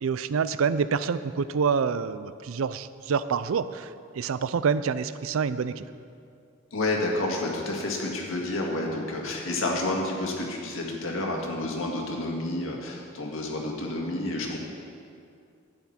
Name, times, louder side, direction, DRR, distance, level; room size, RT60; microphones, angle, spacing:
voice 1, 0.0-5.8, right 6 dB, 85° right, 14 dB, 0.4 m, -27 dB
voice 2, 6.7-14.6, left 2 dB, 75° left, -1 dB, 1.8 m, -30 dB
12.0 x 9.3 x 4.3 m, 2.4 s
head